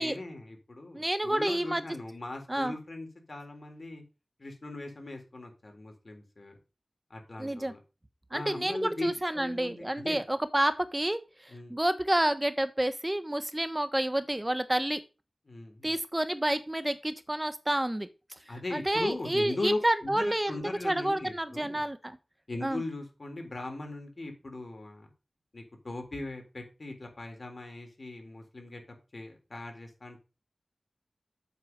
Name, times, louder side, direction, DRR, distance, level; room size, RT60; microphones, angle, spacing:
voice 1, 0.0-4.0 4.4-6.6 7.1-7.8 8.3-9.1 9.3-10.2 11.5-11.8 15.5-16.0 18.5-21.9 22.5-25.1 25.5-28.8 29.1-30.2, left 2 dB, 65° left, 3 dB, 3.7 m, -39 dB
voice 2, 0.9-1.8 2.5-2.7 7.4-7.7 8.3-15.0 15.8-18.4 18.7-22.2 22.6-22.8, right 1 dB, 20° right, 11 dB, 1.3 m, -29 dB
8.2 x 7.3 x 5.3 m, 0.31 s
wide cardioid pair, 45°, 0 cm